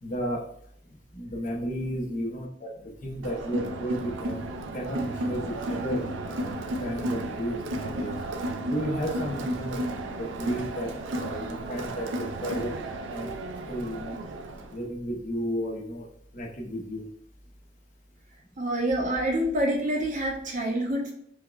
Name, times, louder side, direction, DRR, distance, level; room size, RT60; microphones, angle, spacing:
voice 1, 0.0-0.5 1.1-4.4 4.7-8.2 8.7-12.8 13.1-13.3 13.7-14.2 14.7-16.1 16.3-17.0, equal, 45° left, -2 dB, 0.8 m, -33 dB
Crowd, 3.2-14.8, right 1 dB, 85° right, 0.4 m, -33 dB
voice 2, 18.6-21.1, right 1 dB, 45° right, 0 dB, 0.7 m, -27 dB
4.6 x 2.2 x 2.3 m, 0.67 s
head